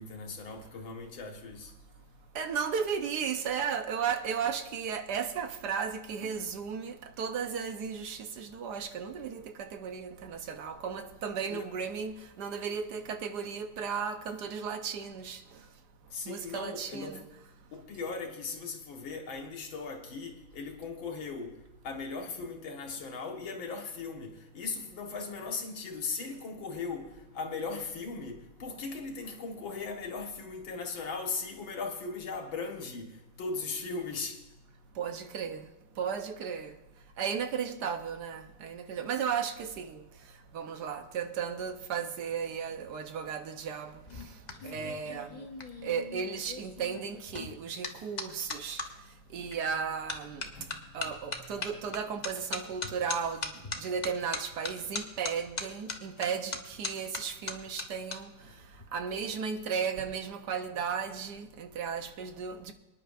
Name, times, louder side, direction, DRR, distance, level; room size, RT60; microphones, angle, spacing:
voice 1, 0.0-1.7 11.5-11.7 16.1-17.2 17.7-21.6 21.8-34.4 44.6-44.9 50.3-51.1 51.4-51.6, left 4 dB, 85° left, 2.3 m, -38 dB
voice 2, 2.3-15.7 16.2-17.2 34.9-36.8 37.2-45.5 45.8-48.9 49.3-50.5 50.9-62.7, right 6 dB, 65° right, 1.3 m, -35 dB
sound 1, 43.9-48.9 49.5-49.8 50.1-58.2 58.4-58.8, left 4 dB, 40° left, 0.6 m, -39 dB
24.5 x 10.0 x 2.5 m
omnidirectional pair, 2.1 m